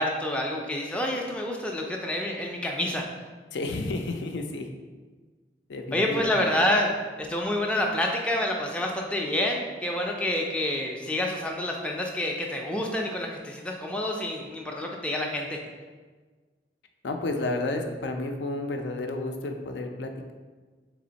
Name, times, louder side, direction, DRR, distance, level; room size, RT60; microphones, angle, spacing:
voice 1, 0.0-3.0 5.9-15.6, left 1 dB, 5° left, 0 dB, 0.4 m, -28 dB
voice 2, 3.5-4.7 5.7-6.3 17.0-20.3, left 2 dB, 75° left, 4 dB, 0.4 m, -31 dB
3.4 x 3.1 x 3.9 m, 1.4 s
head